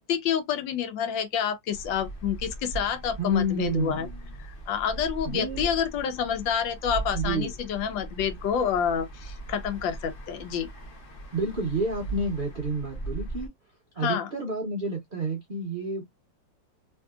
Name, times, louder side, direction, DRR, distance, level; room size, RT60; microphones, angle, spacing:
voice 1, 0.0-4.1 4.4-10.7 14.0-14.3, left 8 dB, 80° left, 1.4 m, -28 dB
sound 1, 1.7-13.5, right 2 dB, 55° left, 0.6 m, -39 dB
voice 2, 3.2-4.2 5.2-5.7 7.1-7.5 11.3-13.5 14.0-16.0, right 2 dB, 85° right, 0.4 m, -29 dB
3.2 x 2.7 x 2.2 m
omnidirectional pair, 2.1 m